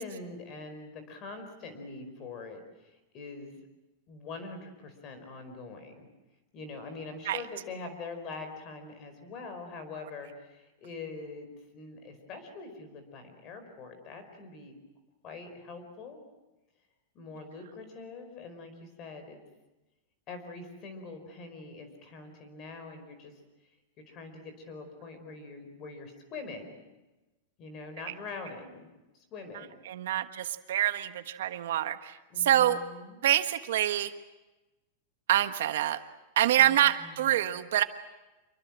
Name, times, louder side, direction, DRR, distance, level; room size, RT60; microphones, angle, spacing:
voice 1, 0.0-3.6 4.1-6.1 6.5-14.8 15.2-16.2 17.1-19.4 20.3-23.4 24.1-26.8 27.6-28.8 29.1-29.8 32.3-33.2 36.5-37.5, left 3 dB, 25° left, 8 dB, 4.9 m, -44 dB
voice 2, 29.8-32.8 33.2-34.1 35.3-36.0 36.4-37.8, right 12 dB, 65° right, 10 dB, 1.4 m, -26 dB
27.5 x 23.5 x 7.5 m, 1.1 s
supercardioid pair, 175°, 0 cm